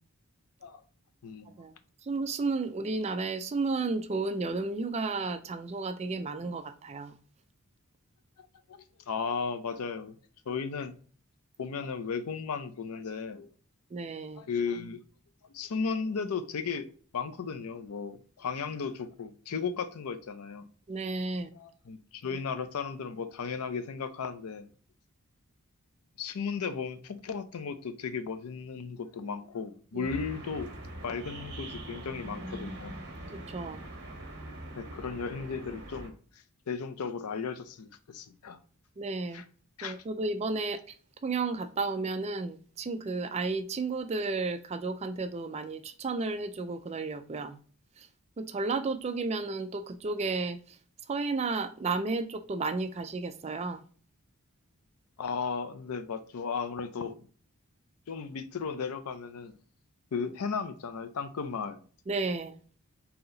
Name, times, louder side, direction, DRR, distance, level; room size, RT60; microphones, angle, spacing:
voice 1, 1.2-1.5 8.7-10.2 10.5-11.0 11.6-13.5 14.4-15.0 15.5-16.9 17.1-20.7 21.5-24.7 26.2-30.7 31.0-32.9 34.8-36.1 36.7-38.6 39.3-39.4 39.8-40.0 55.2-57.2 58.1-59.5 60.1-61.8, left 5 dB, 80° left, 0.5 m, -35 dB
voice 2, 2.0-7.2 13.9-14.4 20.9-21.5 29.9-30.1 33.3-33.8 39.0-39.4 39.8-40.9 41.2-47.6 48.0-48.1 48.4-50.8 51.1-53.8 62.1-62.6, right 3 dB, 30° right, 0.3 m, -32 dB
sound 1, 30.0-36.1, right 1 dB, 50° right, 1.3 m, -42 dB
4.0 x 2.8 x 3.8 m
head